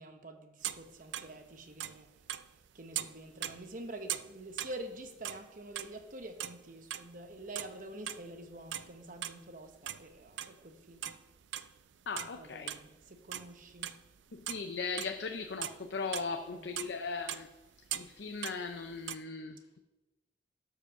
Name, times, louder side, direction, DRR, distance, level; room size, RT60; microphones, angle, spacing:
voice 1, 0.0-2.1 2.7-11.2 12.2-14.0 16.5-16.7, right 1 dB, 50° right, 0.9 m, -47 dB
sound 1, 0.6-1.3 1.6-2.7 2.9-5.4 5.8-6.6 6.9-9.4 9.7-10.6 11.0-13.0 13.3-14.2 14.5-19.2, right 12 dB, 90° right, 0.4 m, -40 dB
voice 2, 12.1-12.7 14.3-17.5 17.9-19.8, left 4 dB, 75° left, 0.6 m, -38 dB
11.5 x 4.8 x 6.6 m
head